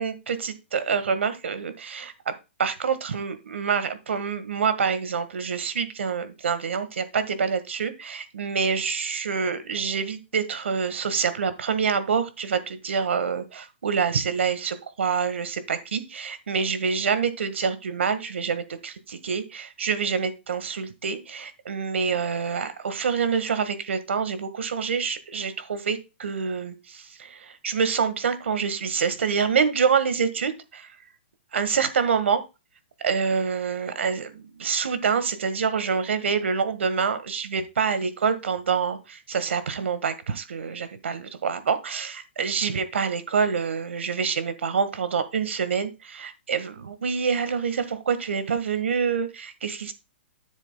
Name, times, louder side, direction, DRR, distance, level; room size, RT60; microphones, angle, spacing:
voice 1, 0.0-2.3 2.6-30.9 31.5-32.4 33.0-49.9, right 6 dB, 85° right, 12 dB, 1.6 m, -26 dB
13.0 x 7.3 x 2.2 m, 0.27 s
hypercardioid pair, 175°, 6 cm